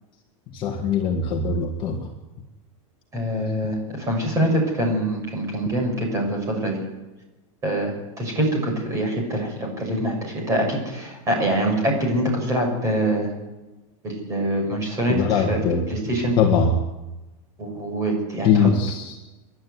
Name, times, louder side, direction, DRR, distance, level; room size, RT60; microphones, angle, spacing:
voice 1, 0.5-2.1 15.1-15.9 16.4-16.8 18.4-19.2, left 5 dB, 25° left, 1 dB, 1.8 m, -21 dB
voice 2, 3.1-6.8 7.6-7.9 8.2-13.3 14.0-15.6 15.9-16.4 17.6-18.7, right 1 dB, 15° right, 1 dB, 6.4 m, -24 dB
28.0 x 11.5 x 9.6 m, 1.1 s
supercardioid pair, 170°, 18 cm